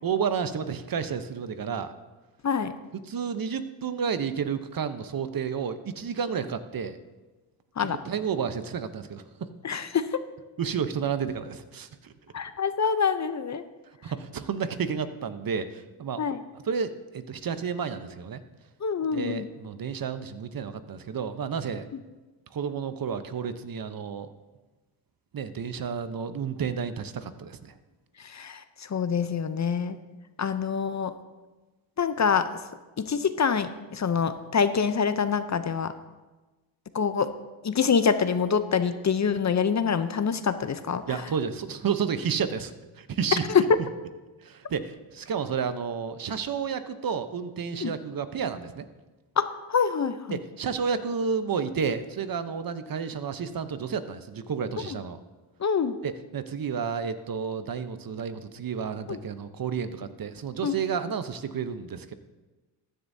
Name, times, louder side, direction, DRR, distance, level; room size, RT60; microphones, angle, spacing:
voice 1, 0.0-1.9 3.1-7.0 7.8-9.2 9.7-9.8 10.6-12.1 14.0-16.2 16.6-18.4 19.1-21.9 22.5-24.3 25.3-27.7 41.1-42.7 43.0-43.5 44.4-48.8 50.3-55.2 56.0-62.1, right 6 dB, 45° right, 11 dB, 0.9 m, -31 dB
voice 2, 9.6-10.1 12.3-13.6 16.2-16.4 18.8-19.5 28.2-30.0 30.4-31.1 32.0-32.5 33.0-35.9 36.9-37.3 37.6-41.2 43.5-43.8 47.8-47.9 49.4-50.4 55.6-56.0 59.1-59.2 60.6-60.8, left 6 dB, 35° left, 11 dB, 0.7 m, -25 dB
14.5 x 10.0 x 2.7 m, 1.2 s
cardioid pair, 70°, 50 cm